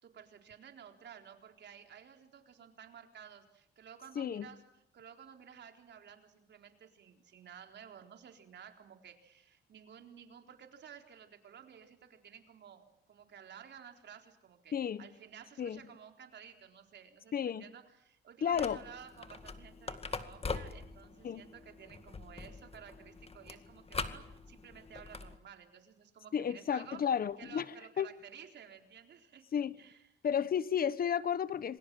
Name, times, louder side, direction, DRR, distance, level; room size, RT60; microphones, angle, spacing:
voice 1, 0.0-4.6 4.9-27.1 27.4-29.5 29.8-30.0, right 8 dB, 60° right, 4.0 m, -54 dB
voice 2, 4.1-4.5 14.7-15.0 15.6-15.8 17.3-17.6 18.4-18.8 21.2-21.4 26.3-28.1 29.5-29.8 30.2-31.8, left 8 dB, 50° left, 1.0 m, -32 dB
sound 1, 18.5-25.4, left 4 dB, 30° left, 2.1 m, -43 dB
27.0 x 23.5 x 7.7 m
cardioid pair, 90°, 20 cm